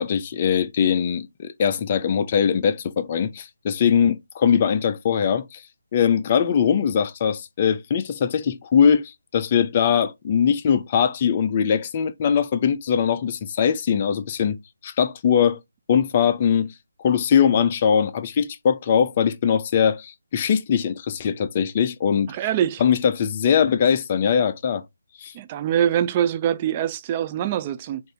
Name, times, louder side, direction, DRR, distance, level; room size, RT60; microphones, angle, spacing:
voice 1, 0.0-5.6 5.9-14.6 14.8-15.6 15.9-16.7 17.0-22.3 22.8-24.8 25.2-25.3, left 7 dB, 30° left, 0.5 m, -21 dB
voice 2, 22.3-22.8 25.3-28.0, right 10 dB, 25° right, 0.4 m, -24 dB
4.4 x 2.6 x 4.7 m
figure-of-eight pair, 150°, 0 cm